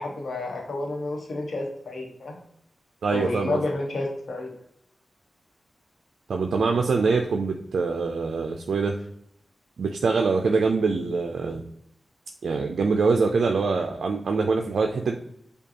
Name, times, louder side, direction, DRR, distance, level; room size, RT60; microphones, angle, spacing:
voice 1, 0.0-2.4 3.1-4.5, left 2 dB, 75° left, 0 dB, 1.0 m, -30 dB
voice 2, 3.0-3.6 6.3-9.0 9.8-11.6 12.4-15.1, right 4 dB, 80° right, 3 dB, 0.3 m, -24 dB
5.1 x 2.3 x 2.7 m, 0.72 s
cardioid pair, 45°, 0 cm